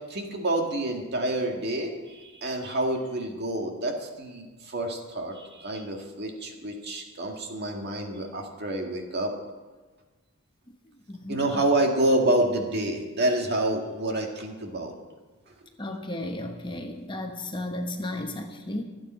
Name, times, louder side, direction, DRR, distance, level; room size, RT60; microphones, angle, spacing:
voice 1, 0.1-9.3 11.3-14.9, right 1 dB, 50° right, 2 dB, 2.0 m, -28 dB
voice 2, 11.1-11.6 15.8-18.8, left 1 dB, 20° left, 3 dB, 1.1 m, -34 dB
25.5 x 8.9 x 4.4 m, 1.3 s
head